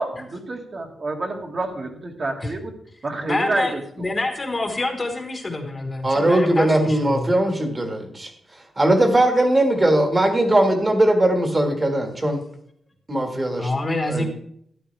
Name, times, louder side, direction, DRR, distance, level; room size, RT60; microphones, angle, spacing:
voice 1, 0.0-2.7 3.0-4.1, right 2 dB, 40° right, 1 dB, 1.7 m, -28 dB
voice 2, 3.2-7.3 13.6-14.3, left 2 dB, 25° left, 4 dB, 1.4 m, -26 dB
voice 3, 6.0-8.3 8.8-12.4 13.1-13.7 14.1-14.3, right 1 dB, 20° right, 4 dB, 1.6 m, -19 dB
12.5 x 11.0 x 3.3 m, 0.68 s
wide cardioid pair, 170°, 0 cm